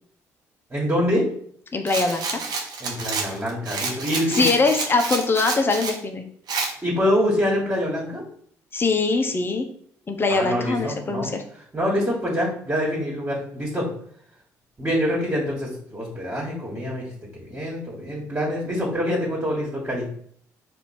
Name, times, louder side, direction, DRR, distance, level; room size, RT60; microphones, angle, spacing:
voice 1, 0.7-1.3 2.8-4.5 6.8-8.2 10.3-11.3 11.7-13.9 14.8-20.1, equal, 25° right, -4 dB, 1.8 m, -25 dB
voice 2, 1.7-2.4 4.3-6.2 8.7-9.6 10.1-11.4, left 3 dB, 30° left, 5 dB, 0.7 m, -22 dB
Rattle, 1.9-6.0 6.5-6.7, right 4 dB, 55° right, 0.9 m, -29 dB
4.3 x 2.6 x 4.4 m, 0.62 s
hypercardioid pair, 50°, 8 cm